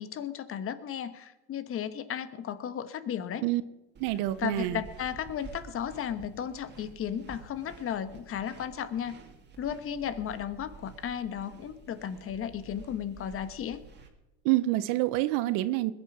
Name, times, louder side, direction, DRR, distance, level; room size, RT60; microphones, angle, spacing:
voice 1, 0.0-3.4 4.4-9.2 9.6-13.8, left 9 dB, 40° left, 13 dB, 1.2 m, -35 dB
sound 1, 3.9-14.1, right 5 dB, 30° right, 2.5 m, -50 dB
voice 2, 4.0-4.8 14.4-15.9, right 16 dB, 75° right, 14 dB, 0.9 m, -27 dB
20.5 x 9.1 x 6.0 m, 0.97 s
cardioid pair, 120°, 33 cm